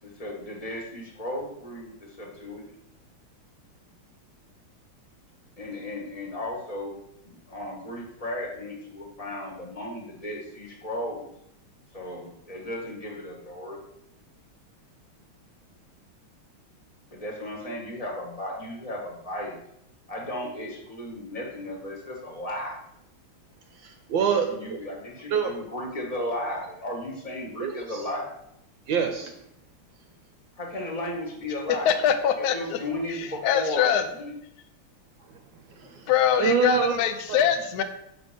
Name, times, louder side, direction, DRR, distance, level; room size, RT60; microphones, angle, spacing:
voice 1, 0.0-2.6 5.6-6.9 7.2-11.3 11.9-13.8 17.1-19.6 20.1-22.8 24.4-28.3 30.6-31.9 32.4-33.9 34.2-34.3, left 1 dB, 20° left, -2 dB, 1.1 m, -35 dB
voice 2, 23.8-24.8 25.3-25.6 27.6-28.0 28.9-29.3 35.8-36.1 36.4-37.0 37.3-37.4, right 6 dB, 70° right, 5 dB, 1.3 m, -26 dB
voice 3, 31.9-32.8 33.2-34.0 36.1-37.8, left 9 dB, 75° left, 7 dB, 0.9 m, -23 dB
6.1 x 3.9 x 5.1 m, 0.76 s
omnidirectional pair, 2.4 m